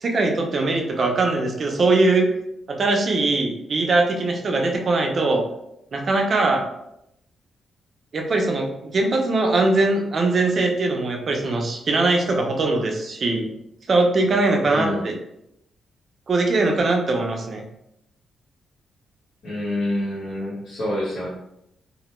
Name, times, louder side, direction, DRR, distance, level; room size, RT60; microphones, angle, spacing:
voice 1, 0.0-2.3 2.7-5.5 5.9-6.6 8.1-13.5 13.9-15.1 16.3-17.6, right 2 dB, 35° right, 2 dB, 0.4 m, -21 dB
voice 2, 14.6-15.1 19.4-21.3, left 1 dB, 50° left, -11 dB, 0.9 m, -27 dB
2.2 x 2.1 x 2.9 m, 0.80 s
wide cardioid pair, 165°, 0 cm